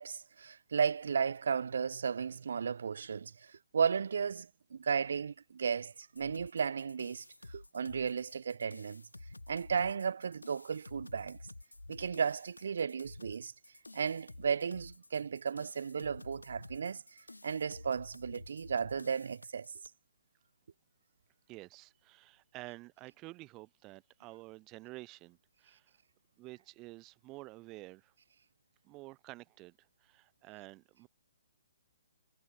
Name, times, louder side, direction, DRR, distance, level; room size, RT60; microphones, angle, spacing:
voice 1, 0.0-9.1 9.5-11.4 11.9-13.5 13.9-17.0 17.4-19.7, right 6 dB, 60° right, 0.3 m, -34 dB
sound 1, 6.2-19.9, left 2 dB, 85° left, 0.6 m, -51 dB
voice 2, 21.5-25.9 26.4-28.1 28.8-31.1, right 21 dB, 25° right, 2.5 m, -50 dB
figure-of-eight pair, 130°, 0 cm